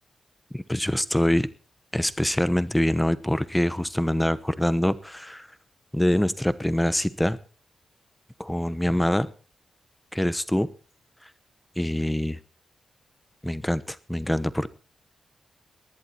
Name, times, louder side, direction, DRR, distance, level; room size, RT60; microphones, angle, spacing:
voice 1, 0.5-1.5 1.9-5.5 5.9-7.4 8.4-9.3 10.1-10.7 11.8-12.4 13.4-14.7, left 1 dB, 5° left, 1.0 m, -24 dB
19.5 x 11.0 x 4.3 m
wide cardioid pair, 100°, 0 cm